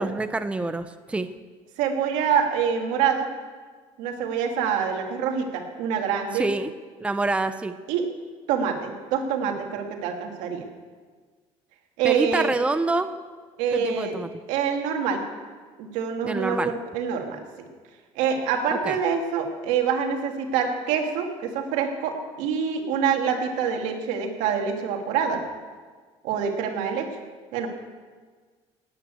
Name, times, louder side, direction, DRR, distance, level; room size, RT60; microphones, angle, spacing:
voice 1, 0.0-1.3 6.4-6.7 7.0-7.8 12.0-13.1 13.7-14.3 16.2-16.7 18.8-19.0, right 2 dB, 10° right, 10 dB, 0.7 m, -26 dB
voice 2, 1.8-3.3 4.0-6.5 7.9-8.1 8.5-10.7 12.0-12.5 13.6-14.2 14.5-15.2 15.8-17.7 18.2-25.4 26.2-27.1 27.5-27.7, right 7 dB, 85° right, 3 dB, 2.3 m, -26 dB
18.5 x 9.0 x 8.3 m, 1.5 s
cardioid pair, 120°, 12 cm